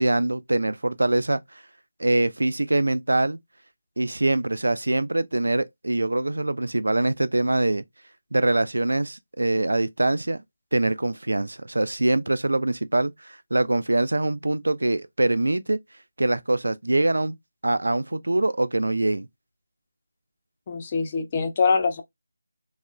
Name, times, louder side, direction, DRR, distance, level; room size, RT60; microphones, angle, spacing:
voice 1, 0.0-1.4 2.0-3.4 4.0-7.8 8.3-10.4 10.7-15.8 16.2-17.4 17.6-19.3, right 2 dB, 75° right, 0.3 m, -23 dB
voice 2, 20.7-22.0, left 4 dB, 30° left, 0.5 m, -23 dB
2.9 x 2.0 x 2.4 m
figure-of-eight pair, 160°, 0 cm